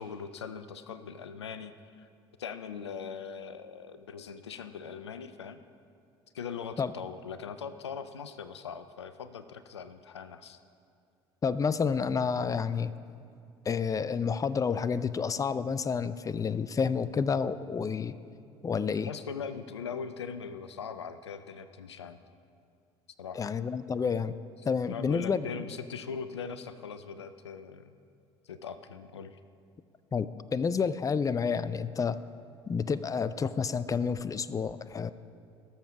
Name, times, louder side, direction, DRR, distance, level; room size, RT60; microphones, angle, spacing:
voice 1, 0.0-2.1 2.4-5.6 6.3-10.6 19.0-22.2 23.2-23.6 24.9-27.9 28.4-29.4, left 6 dB, 90° left, 12 dB, 0.4 m, -41 dB
voice 2, 11.4-12.9 13.7-18.2 18.6-19.1 23.3-24.3 24.6-25.5 30.1-32.2 32.7-35.1, left 6 dB, 25° left, 15 dB, 0.5 m, -29 dB
18.0 x 7.1 x 4.7 m, 2.4 s
hypercardioid pair, 60°, 14 cm